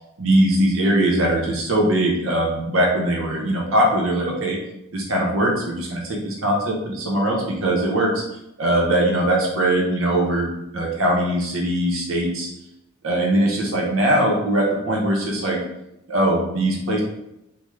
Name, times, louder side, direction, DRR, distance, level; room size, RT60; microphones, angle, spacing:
voice 1, 0.2-4.6 4.9-8.2 8.6-12.5 13.0-15.6 16.1-17.0, right 1 dB, 75° right, -2 dB, 0.7 m, -21 dB
3.4 x 2.0 x 3.2 m, 0.87 s
head